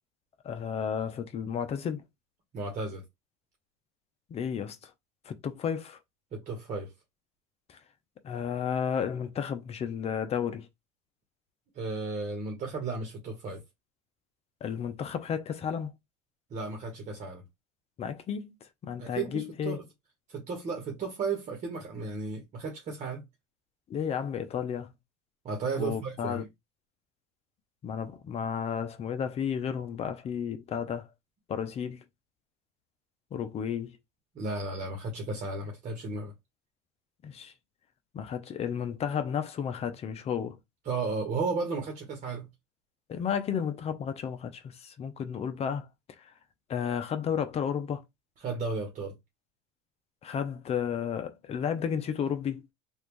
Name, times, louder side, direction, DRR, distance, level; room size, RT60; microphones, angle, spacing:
voice 1, 0.4-2.0 4.3-4.9 5.2-6.0 7.7-7.8 8.2-10.7 14.6-15.9 18.0-18.5 18.8-19.8 23.9-24.9 25.8-26.4 27.8-31.1 31.5-32.0 33.3-34.0 37.2-37.5 38.1-40.6 43.1-45.9 46.2-46.3 46.7-48.0 50.2-52.7, left 7 dB, 35° left, 0.7 m, -32 dB
voice 2, 2.5-3.0 6.3-6.9 11.7-13.6 16.5-17.4 19.0-19.8 20.3-23.2 25.4-26.5 34.3-36.3 40.9-42.5 48.4-49.1, right 4 dB, 40° right, 1.3 m, -34 dB
3.2 x 2.6 x 3.1 m
supercardioid pair, 110°, 18 cm